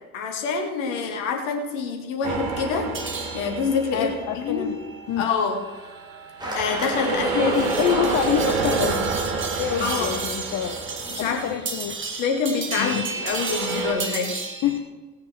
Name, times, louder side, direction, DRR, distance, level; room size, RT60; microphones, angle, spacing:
voice 1, 0.1-2.9 3.3-4.1 4.4-4.7 5.2-5.6 6.5-7.5 9.8-10.2 11.1-11.6 12.2-14.3, left 5 dB, 65° left, 3 dB, 2.3 m, -26 dB
sound 1, 2.2-4.7 5.3-11.7 12.9-13.9, right 5 dB, 60° right, 1.9 m, -29 dB
sound 2, 2.9-14.8, right 4 dB, 30° right, 2.2 m, -34 dB
voice 2, 3.9-4.8 5.1-5.3 7.1-9.1 9.6-10.8 11.2-12.0 12.8-13.1 14.6-14.8, left 10 dB, 45° left, 6 dB, 1.1 m, -26 dB
sound 3, 6.4-11.4, right 1 dB, 10° right, 4.1 m, -34 dB
18.5 x 6.5 x 6.4 m, 1.3 s
figure-of-eight pair, 55°, 39 cm